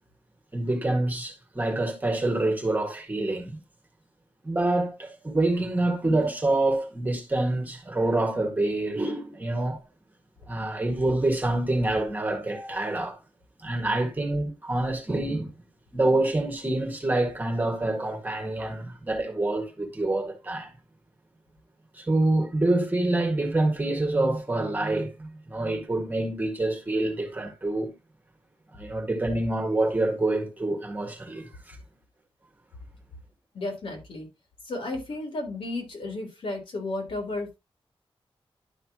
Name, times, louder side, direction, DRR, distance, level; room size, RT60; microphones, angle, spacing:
voice 1, 0.5-3.6 4.4-9.8 10.5-13.2 13.6-15.5 15.9-20.7 21.9-27.9 28.7-31.8, right 2 dB, 20° right, 1.8 m, -26 dB
voice 2, 33.5-34.3 34.6-37.6, left 2 dB, 70° left, 3.6 m, -33 dB
11.5 x 5.7 x 3.0 m
wide cardioid pair, 180°, 10 cm